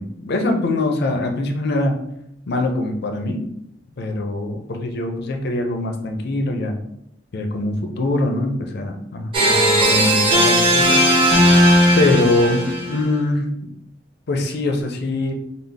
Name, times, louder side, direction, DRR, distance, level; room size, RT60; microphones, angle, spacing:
voice 1, 0.0-2.0 2.5-3.4 4.0-6.8 7.3-11.0 11.9-13.5 14.3-15.3, left 2 dB, 60° left, 4 dB, 0.5 m, -23 dB
sound 1, 9.3-13.0, equal, 30° right, 0.7 m, -16 dB
3.9 x 2.0 x 3.4 m, 0.76 s
head